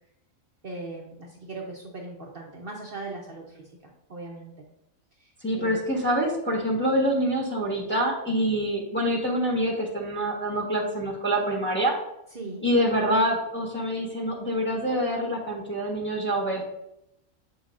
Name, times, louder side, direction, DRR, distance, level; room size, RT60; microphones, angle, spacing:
voice 1, 0.6-3.7 4.1-4.7 5.2-5.8 12.3-12.7, right 2 dB, 50° right, -1 dB, 0.9 m, -39 dB
voice 2, 5.4-12.0 12.6-16.6, equal, 10° left, -2 dB, 1.1 m, -26 dB
7.7 x 5.6 x 2.5 m, 0.81 s
omnidirectional pair, 1.4 m